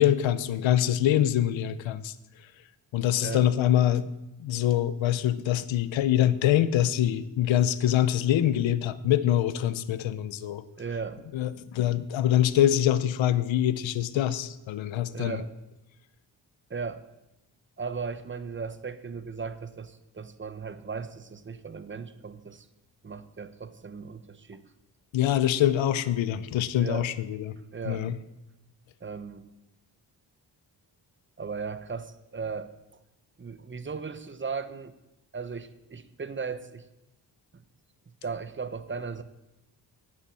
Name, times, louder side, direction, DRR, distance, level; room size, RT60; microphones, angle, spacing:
voice 1, 0.0-2.1 2.9-4.1 4.4-10.6 11.3-15.4 25.1-27.5 27.9-28.2, left 11 dB, 85° left, 15 dB, 0.8 m, -24 dB
voice 2, 3.2-3.5 10.8-11.2 15.1-15.5 16.7-17.0 17.8-22.7 23.0-24.6 26.8-27.1 27.6-28.1 29.0-29.5 31.4-32.7 33.4-35.0 35.3-36.9 37.5-37.6 38.2-39.2, right 5 dB, 25° right, 13 dB, 1.0 m, -36 dB
9.3 x 8.7 x 7.6 m, 0.95 s
cardioid pair, 65°, 45 cm